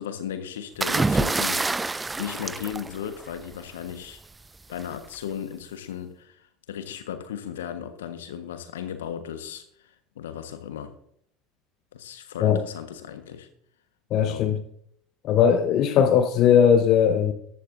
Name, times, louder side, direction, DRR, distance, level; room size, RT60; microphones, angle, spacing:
voice 1, 0.0-4.2 4.7-10.9 11.9-13.5 14.2-14.5, left 9 dB, 70° left, 1.3 m, -36 dB
sound 1, 0.8-3.6 4.8-5.1, right 3 dB, 15° right, 0.4 m, -26 dB
voice 2, 14.1-14.6 15.2-17.3, left 8 dB, 50° left, 0.9 m, -19 dB
14.5 x 11.0 x 2.6 m
figure-of-eight pair, 70°, 0 cm